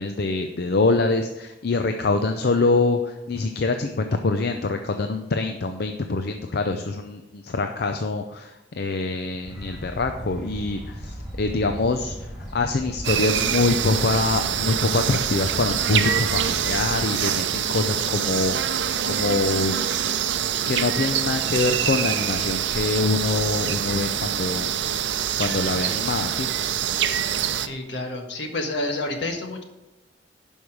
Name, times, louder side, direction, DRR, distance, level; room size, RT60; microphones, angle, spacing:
voice 1, 0.0-19.8 20.7-24.7 25.4-26.5, left 3 dB, 60° left, 6 dB, 0.5 m, -25 dB
sound 1, 9.4-17.1, equal, 5° right, 2.9 m, -37 dB
sound 2, 13.0-27.7, right 9 dB, 75° right, 0.6 m, -25 dB
voice 2, 27.6-29.6, left 2 dB, 75° left, 4 dB, 1.5 m, -29 dB
11.0 x 5.5 x 4.7 m, 1.0 s
head